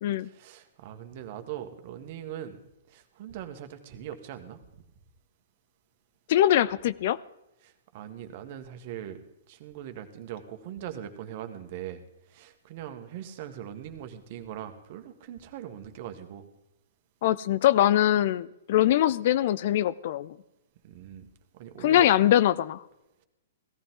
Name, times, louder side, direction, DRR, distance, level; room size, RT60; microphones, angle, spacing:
voice 1, 0.2-2.6 2.9-4.6 7.6-9.2 9.5-12.0 12.3-16.5 20.8-21.3 21.5-22.1, right 10 dB, 50° right, 8 dB, 1.8 m, -41 dB
voice 2, 6.3-7.2 17.2-20.4 21.8-22.8, left 12 dB, 55° left, 18 dB, 0.6 m, -22 dB
18.0 x 14.0 x 3.9 m, 0.87 s
hypercardioid pair, 120°, 0 cm